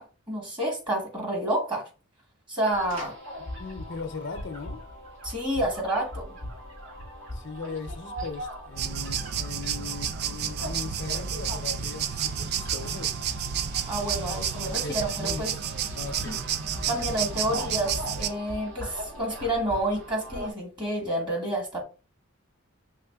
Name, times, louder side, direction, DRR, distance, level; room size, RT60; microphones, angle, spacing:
voice 1, 0.0-1.8 2.5-3.1 5.2-6.4 13.9-15.5 16.2-16.3 16.9-21.8, right 1 dB, 25° right, 1.7 m, -29 dB
sound 1, 2.7-20.5, equal, 65° right, 2.4 m, -40 dB
voice 2, 3.4-4.8 7.3-13.2 14.3-14.4 14.7-15.4 15.9-16.9, left 4 dB, 60° left, 0.6 m, -39 dB
sound 2, 8.8-18.3, right 8 dB, 50° right, 0.3 m, -31 dB
5.6 x 3.4 x 2.3 m
head